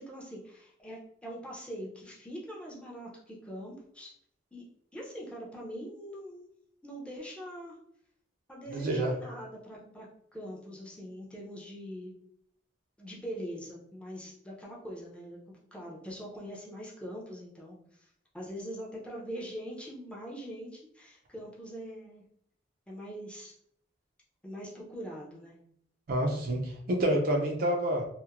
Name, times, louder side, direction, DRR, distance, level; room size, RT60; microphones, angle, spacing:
voice 1, 0.0-4.1 4.5-4.6 4.9-6.5 6.8-7.8 8.5-12.2 13.0-18.1 18.3-22.2 22.9-23.5 24.4-25.6, equal, 5° left, -4 dB, 0.5 m, -43 dB
voice 2, 8.7-9.1 26.1-28.1, right 1 dB, 50° right, 1 dB, 0.4 m, -28 dB
2.9 x 2.0 x 2.3 m, 0.68 s
head